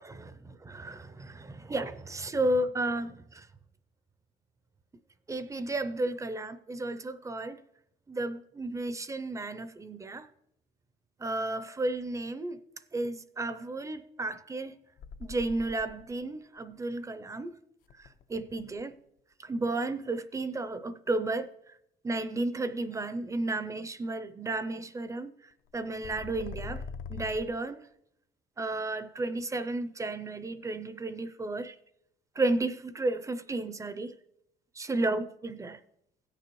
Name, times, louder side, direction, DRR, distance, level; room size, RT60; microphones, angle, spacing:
voice 1, 0.1-3.5 5.3-7.6 8.1-10.3 11.2-12.6 12.9-14.8 15.2-17.5 18.0-19.0 19.4-21.7 22.0-25.3 25.7-26.8 27.1-27.8 28.6-31.8 32.4-34.1 34.8-35.8, right 2 dB, 20° right, 0.5 m, -33 dB
sound 1, 15.0-16.2 17.9-18.8 25.7-27.5, left 5 dB, 60° left, 0.5 m, -42 dB
16.5 x 6.8 x 3.1 m
cardioid pair, 110°, 17 cm